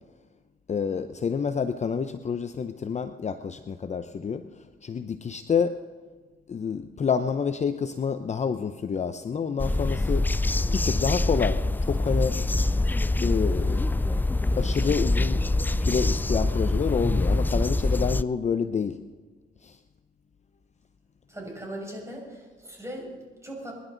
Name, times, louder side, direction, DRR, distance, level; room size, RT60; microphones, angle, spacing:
voice 1, 0.7-5.8 6.5-10.2 10.7-12.4 13.2-13.8 14.6-15.4 15.7-19.0 19.6-19.8, left 6 dB, 35° left, 9 dB, 0.7 m, -28 dB
sound 1, 9.6-18.2, left 2 dB, 10° left, 0.3 m, -25 dB
voice 2, 21.3-23.7, right 1 dB, 15° right, -1 dB, 6.0 m, -39 dB
25.0 x 11.0 x 4.0 m, 1.4 s
cardioid pair, 90°, 20 cm